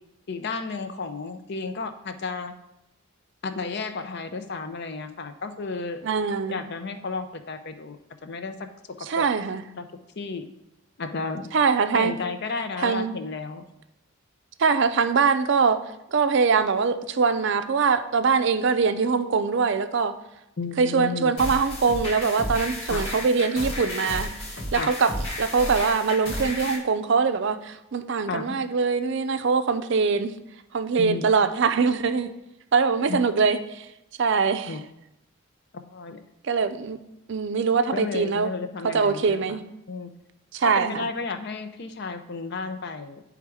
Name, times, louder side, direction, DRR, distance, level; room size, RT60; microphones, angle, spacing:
voice 1, 0.3-2.5 3.4-6.0 6.5-8.7 9.0-9.2 9.8-9.9 10.2-10.5 11.0-11.5 11.9-13.7 20.6-21.4 22.9-23.0 24.8-24.9 28.3-28.6 31.0-31.2 33.1-33.2 34.7-34.8 35.7-36.2 37.9-39.6 39.9-40.1 40.6-43.2, left 4 dB, 50° left, 9 dB, 0.6 m, -33 dB
voice 2, 6.0-6.6 9.1-9.6 11.5-12.2 12.8-13.2 14.6-15.8 16.1-20.1 20.8-24.3 24.7-25.1 25.4-30.4 30.7-32.3 32.7-33.9 34.2-34.7 36.4-37.0 37.3-38.5 38.9-39.6 40.5-41.1, right 5 dB, 55° right, 10 dB, 0.4 m, -23 dB
sound 1, 21.4-26.8, left 1 dB, 80° left, 1.8 m, -32 dB
9.8 x 3.5 x 4.7 m, 0.88 s
head